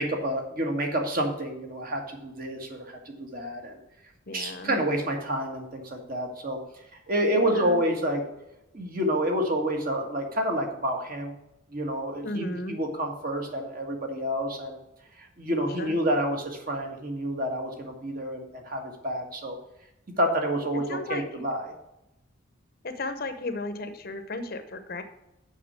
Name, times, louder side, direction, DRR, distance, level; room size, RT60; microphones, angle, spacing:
voice 1, 0.0-3.8 4.3-6.6 6.9-8.2 8.7-11.3 11.7-14.8 15.2-19.6 20.2-21.7, equal, 45° right, 2 dB, 1.6 m, -29 dB
voice 2, 4.3-4.7 7.3-7.8 12.2-12.7 15.8-16.0 20.7-21.4 22.8-25.0, left 2 dB, 45° left, 9 dB, 0.8 m, -34 dB
7.3 x 5.6 x 6.1 m, 0.88 s
head